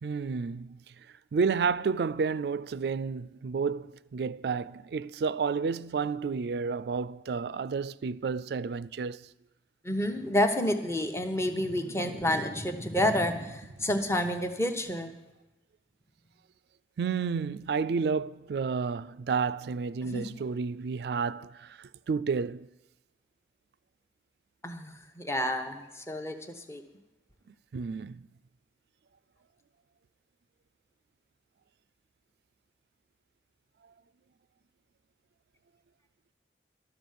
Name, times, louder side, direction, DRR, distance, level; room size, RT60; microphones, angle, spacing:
voice 1, 0.0-0.8 1.3-9.3 17.0-21.8 22.1-22.7 27.7-28.2, right 5 dB, 60° right, 0.3 m, -31 dB
voice 2, 9.8-15.1 20.1-20.2 24.6-26.4 26.7-26.8, left 1 dB, 15° left, 0.9 m, -29 dB
12.5 x 7.0 x 9.2 m
head